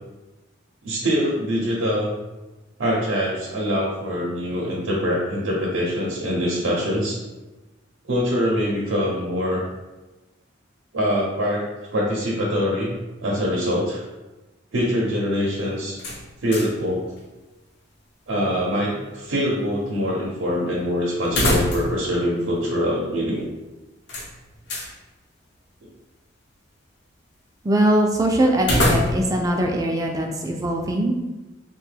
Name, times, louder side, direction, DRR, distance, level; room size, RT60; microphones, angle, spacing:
voice 1, 0.8-2.2 2.8-7.2 8.0-9.7 10.9-11.7 11.9-12.9 13.2-14.0 14.7-16.0 16.4-17.0 18.3-23.4, equal, 90° right, -4 dB, 0.6 m, -24 dB
sound 1, 16.0-16.9 17.2-17.3 21.2-22.1 22.4-22.5 24.1-24.9 28.6-29.4, left 1 dB, 55° left, 0.6 m, -24 dB
voice 2, 27.6-31.2, right 1 dB, 20° right, 2 dB, 0.3 m, -21 dB
2.9 x 2.2 x 3.2 m, 1.1 s
head